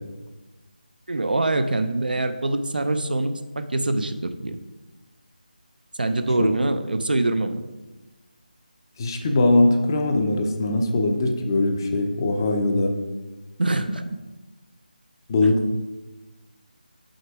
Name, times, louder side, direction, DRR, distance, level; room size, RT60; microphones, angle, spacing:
voice 1, 1.1-4.6 6.0-7.6 13.6-14.0, right 2 dB, 70° right, 9 dB, 0.6 m, -24 dB
voice 2, 9.0-12.9 15.3-15.6, left 2 dB, 25° left, 4 dB, 0.6 m, -21 dB
6.4 x 4.9 x 4.7 m, 1.2 s
figure-of-eight pair, 160°, 5 cm